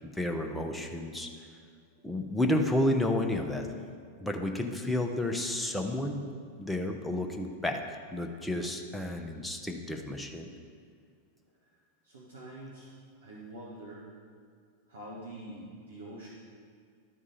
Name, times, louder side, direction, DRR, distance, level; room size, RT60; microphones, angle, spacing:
voice 1, 0.0-1.3 2.0-3.7 4.2-6.2 6.6-7.8 8.1-10.5, left 1 dB, 5° left, 3 dB, 0.7 m, -31 dB
voice 2, 12.0-12.9 13.2-14.0 14.9-16.3, right 1 dB, 70° right, -5 dB, 1.3 m, -45 dB
12.0 x 4.9 x 4.2 m, 2.1 s
figure-of-eight pair, 90°, 0 cm